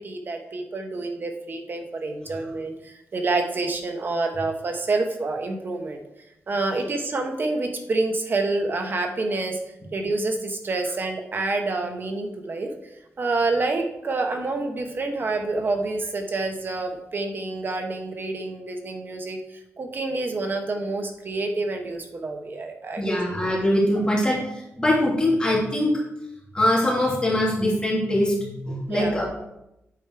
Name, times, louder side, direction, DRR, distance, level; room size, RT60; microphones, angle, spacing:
voice 1, 0.0-6.0 6.5-9.6 9.9-12.7 13.2-19.4 19.8-23.2 28.9-29.2, right 3 dB, 45° right, 5 dB, 1.3 m, -27 dB
voice 2, 23.0-24.4 24.8-26.0 26.5-29.3, left 1 dB, 20° left, -5 dB, 3.1 m, -22 dB
8.6 x 5.3 x 4.8 m, 0.88 s
wide cardioid pair, 105°, 5 cm